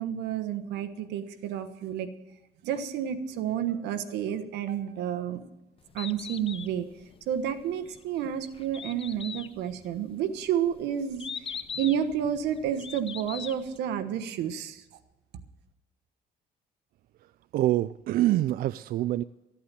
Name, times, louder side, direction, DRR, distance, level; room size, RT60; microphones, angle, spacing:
voice 1, 0.0-2.1 2.6-5.4 5.9-6.9 7.3-14.8, right 9 dB, 85° right, 10 dB, 1.2 m, -30 dB
Bird, 5.8-13.8, left 7 dB, 35° left, 0.7 m, -41 dB
voice 2, 17.5-19.2, right 14 dB, 60° right, 15 dB, 0.4 m, -25 dB
15.0 x 8.6 x 7.6 m, 1.0 s
cardioid pair, 110°, 17 cm